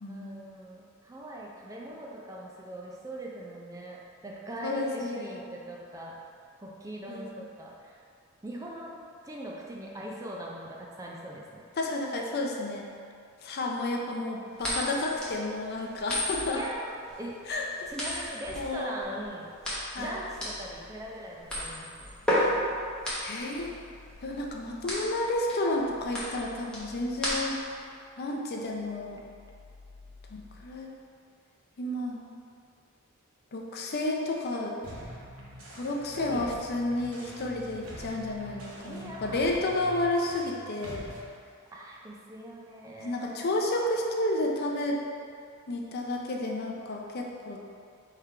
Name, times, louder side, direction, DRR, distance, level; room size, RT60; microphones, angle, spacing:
voice 1, 0.1-6.2 6.6-8.0 8.4-8.9 9.2-11.6 16.6-17.5 17.9-19.5 20.0-22.1 36.2-36.8 38.8-39.5 41.7-43.4, right 1 dB, 15° right, -3 dB, 0.4 m, -41 dB
voice 2, 4.6-5.4 7.1-7.2 11.8-12.9 13.4-16.6 17.5-17.9 18.6-19.0 19.9-20.2 23.2-23.7 24.2-27.6 28.2-29.2 30.3-30.9 31.8-32.3 33.5-34.8 35.7-41.0 43.0-45.0 45.7-47.6, left 2 dB, 50° left, 0 dB, 0.5 m, -31 dB
sound 1, 14.6-27.8, left 1 dB, 5° left, 0.9 m, -33 dB
sound 2, 19.9-21.3 21.7-28.3 28.6-30.9, left 3 dB, 65° left, 0.8 m, -54 dB
sound 3, 34.8-41.3, equal, 85° right, 0.9 m, -45 dB
3.7 x 3.3 x 4.4 m, 2.3 s
head